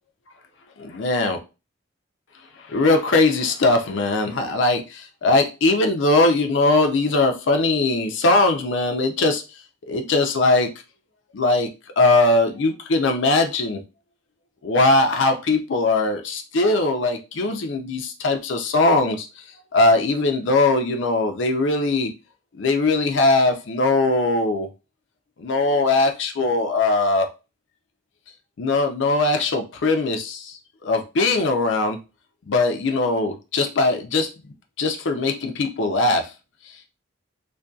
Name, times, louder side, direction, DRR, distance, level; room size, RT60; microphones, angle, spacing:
voice 1, 0.8-1.4 2.7-9.4 9.9-10.7 11.3-11.7 12.0-13.8 14.6-19.3 19.7-22.1 22.6-24.7 25.4-27.3 28.6-30.5 30.8-32.0 32.5-34.3 34.8-36.3, left 2 dB, 65° left, 0.5 m, -20 dB
2.6 x 2.2 x 2.3 m
head